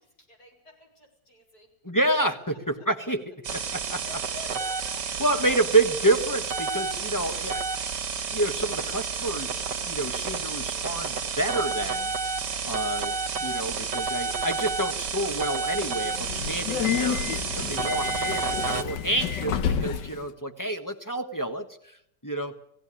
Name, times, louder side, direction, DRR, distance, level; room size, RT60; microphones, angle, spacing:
voice 1, 0.0-1.7 2.5-2.6 3.8-5.3 12.4-12.7, left 2 dB, 60° left, 0 dB, 5.8 m, -48 dB
voice 2, 1.8-4.0 5.2-7.6 8.3-12.1 12.7-22.0 22.2-22.6, right 2 dB, 10° left, 4 dB, 1.2 m, -28 dB
sound 1, 3.4-18.8, right 5 dB, 75° right, 2.3 m, -30 dB
Subway metro underground, 16.0-20.2, left 8 dB, 85° left, 1.7 m, -29 dB
19.0 x 15.5 x 9.9 m, 0.75 s
omnidirectional pair, 1.9 m